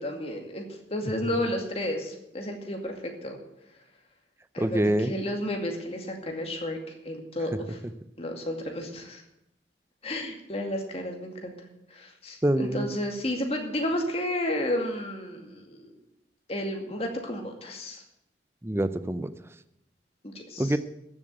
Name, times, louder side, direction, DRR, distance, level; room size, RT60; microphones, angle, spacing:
voice 1, 0.0-3.4 4.5-6.8 7.0-7.8 8.2-9.2 10.0-11.6 11.9-15.9 16.5-18.0 20.2-20.7, left 1 dB, 35° left, 2 dB, 2.2 m, -32 dB
voice 2, 4.6-5.1 12.4-12.9 18.6-19.3 20.6-20.8, right 1 dB, 15° right, 12 dB, 0.6 m, -25 dB
14.5 x 7.3 x 8.0 m, 0.85 s
head